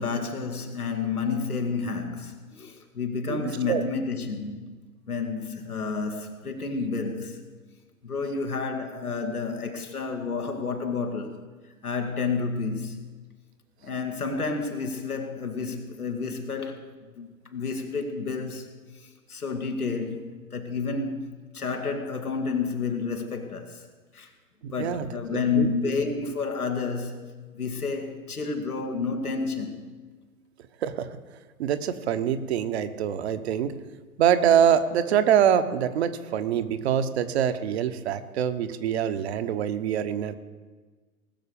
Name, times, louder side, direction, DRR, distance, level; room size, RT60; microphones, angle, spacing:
voice 1, 0.0-4.7 5.1-7.4 8.0-11.4 11.8-13.1 13.8-16.9 17.2-18.8 19.3-20.3 20.5-23.9 24.1-24.3 24.7-27.3 27.5-29.8, left 4 dB, 90° left, 2.2 m, -30 dB
voice 2, 3.3-3.8 24.6-25.7 30.8-31.2 31.6-33.7 34.2-40.3, right 9 dB, 45° right, 1.0 m, -25 dB
19.5 x 6.5 x 7.0 m
figure-of-eight pair, 120°, 43 cm